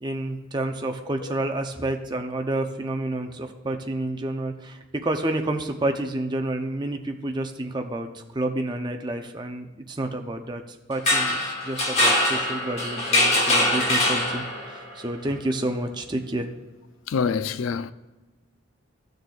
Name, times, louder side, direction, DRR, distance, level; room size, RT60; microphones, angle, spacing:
voice 1, 0.0-10.6 10.9-16.5, right 1 dB, 20° right, 0.6 m, -29 dB
sound 1, 10.9-14.8, left 1 dB, 30° left, 1.4 m, -22 dB
voice 2, 17.1-17.9, left 6 dB, 75° left, 0.4 m, -25 dB
14.5 x 6.5 x 2.4 m
head